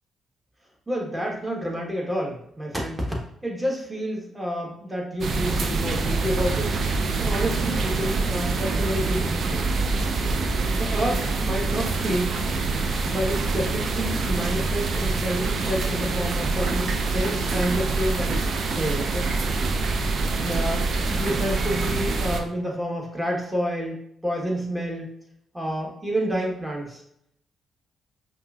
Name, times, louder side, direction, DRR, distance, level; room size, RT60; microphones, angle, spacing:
voice 1, 0.9-3.0 3.4-6.8 7.2-9.7 10.7-12.4 13.0-19.6 20.4-24.0 24.2-25.1 25.5-27.0, equal, 15° right, -2 dB, 1.4 m, -29 dB
sound 1, 5.2-22.4, right 3 dB, 55° right, 0.4 m, -25 dB
5.2 x 2.6 x 2.5 m, 0.72 s
hypercardioid pair, 40°, 0 cm